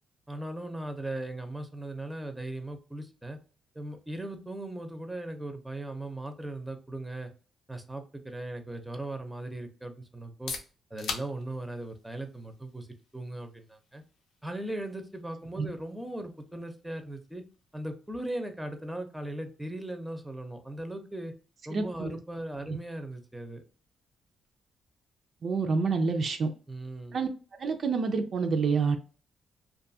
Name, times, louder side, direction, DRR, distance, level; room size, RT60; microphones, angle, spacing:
voice 1, 0.3-3.4 3.7-7.3 7.7-10.5 10.9-12.9 13.1-14.0 14.4-17.4 17.7-21.3 21.7-23.6 26.7-27.2, right 1 dB, 5° right, 6 dB, 0.6 m, -38 dB
sound 1, 10.2-25.8, left 4 dB, 75° left, 0.6 m, -48 dB
voice 2, 21.7-22.1 25.4-26.5 27.1-27.3 27.6-29.0, right 4 dB, 55° right, 5 dB, 0.4 m, -27 dB
2.5 x 2.3 x 2.6 m, 0.37 s
cardioid pair, 70°, 0 cm